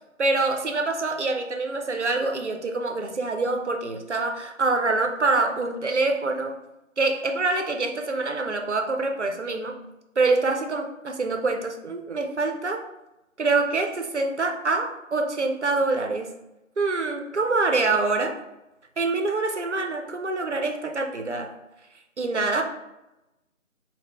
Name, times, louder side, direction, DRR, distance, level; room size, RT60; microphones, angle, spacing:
voice 1, 0.2-6.6 7.0-9.9 10.2-12.8 13.4-16.3 16.8-18.4 19.0-21.5 22.2-22.6, right 3 dB, 60° right, 4 dB, 0.5 m, -25 dB
3.5 x 2.1 x 3.3 m, 0.96 s
figure-of-eight pair, 180°, 40 cm